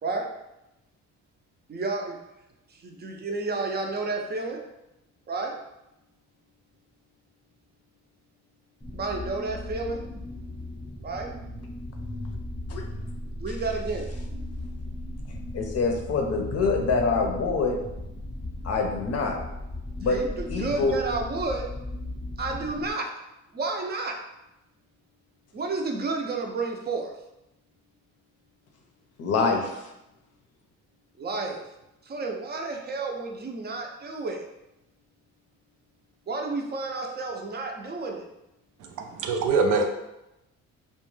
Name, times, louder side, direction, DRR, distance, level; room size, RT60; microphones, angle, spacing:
voice 1, 1.7-2.2 2.8-4.6 5.3-5.6 8.9-10.0 11.0-11.3 13.4-14.1 20.1-21.7 22.4-23.1 23.5-24.2 25.5-27.1 31.2-31.6 32.1-34.4 36.3-38.3, right 3 dB, 35° right, 2 dB, 0.5 m, -31 dB
sound 1, 8.8-22.9, left 1 dB, 15° left, 0.7 m, -36 dB
voice 2, 15.5-17.8 18.6-19.4 20.0-20.2 20.5-20.9 29.2-29.8, left 4 dB, 55° left, 2 dB, 0.6 m, -25 dB
voice 3, 38.8-39.9, right 4 dB, 85° right, 4 dB, 0.5 m, -24 dB
2.4 x 2.2 x 3.1 m, 0.90 s
cardioid pair, 90°, 30 cm